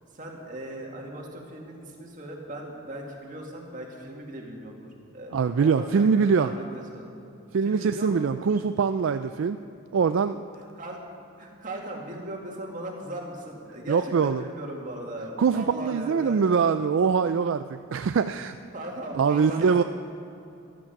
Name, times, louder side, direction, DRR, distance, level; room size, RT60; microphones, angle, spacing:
voice 1, 0.1-7.1 7.6-8.4 10.5-11.0 11.4-16.6 18.2-19.8, right 1 dB, 35° right, 0 dB, 2.1 m, -38 dB
voice 2, 5.3-6.5 7.5-9.6 9.9-10.4 13.9-14.4 15.4-18.6 19.1-19.8, right 6 dB, 60° right, 10 dB, 0.3 m, -23 dB
14.5 x 12.5 x 5.9 m, 2.8 s
head